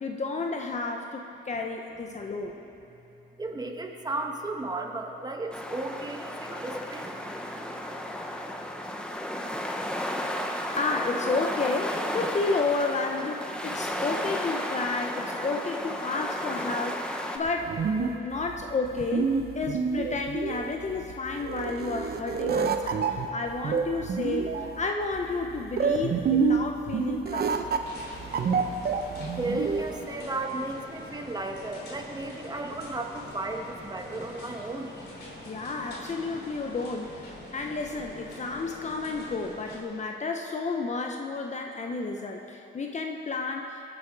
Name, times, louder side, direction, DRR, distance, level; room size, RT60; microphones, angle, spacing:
voice 1, 0.0-2.6 10.8-17.7 18.0-19.3 19.5-27.6 35.4-43.8, left 3 dB, 35° left, 3 dB, 0.9 m, -31 dB
voice 2, 3.4-7.1 29.4-35.0, right 2 dB, 20° right, 2 dB, 1.5 m, -34 dB
sound 1, 5.5-17.4, equal, 5° left, 1.1 m, -33 dB
sound 2, 17.5-30.0, right 5 dB, 50° right, 0.9 m, -28 dB
sound 3, 27.8-39.8, left 1 dB, 55° left, 3.3 m, -44 dB
20.5 x 8.4 x 4.8 m, 3.0 s
cardioid pair, 90°, 20 cm